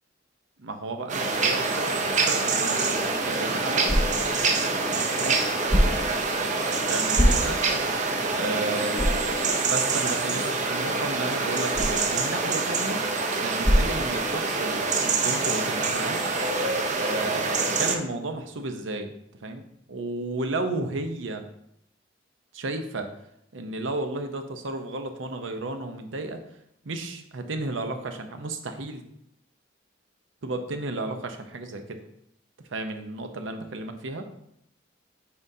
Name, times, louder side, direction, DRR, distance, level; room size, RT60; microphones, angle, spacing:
voice 1, 0.6-2.8 3.2-4.2 4.7-5.9 6.9-7.6 8.3-13.0 13.4-16.2 16.9-19.1 19.4-19.6 19.9-21.4 22.5-23.1 23.5-26.4 26.8-29.0 30.4-32.0 32.7-34.2, right 2 dB, 80° right, 6 dB, 0.7 m, -33 dB
sound 1, 1.1-18.0, right 3 dB, 40° right, 0.6 m, -26 dB
sound 2, 3.0-14.7, equal, 15° right, 1.2 m, -29 dB
9.4 x 3.7 x 2.7 m, 0.76 s
head